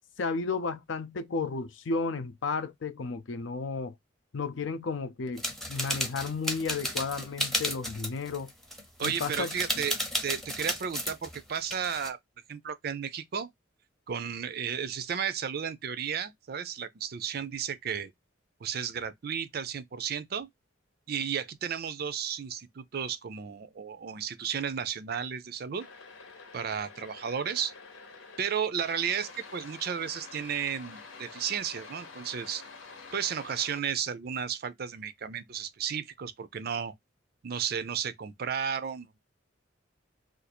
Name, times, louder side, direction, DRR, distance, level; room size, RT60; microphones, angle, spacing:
voice 1, 0.2-3.9 4.3-5.4 5.7-8.5 9.0-9.5, left 4 dB, 70° left, 0.5 m, -33 dB
sound 1, 5.4-12.1, equal, ahead, 0.6 m, -33 dB
voice 2, 9.0-9.9 10.2-12.2 12.5-13.5 14.1-18.1 18.6-20.5 21.1-25.9 26.5-27.7 28.4-32.6 33.1-36.9 37.4-39.1, right 7 dB, 50° right, 0.4 m, -33 dB
sound 2, 25.8-28.4 28.8-33.8, left 4 dB, 90° left, 0.9 m, -48 dB
2.6 x 2.4 x 4.1 m
head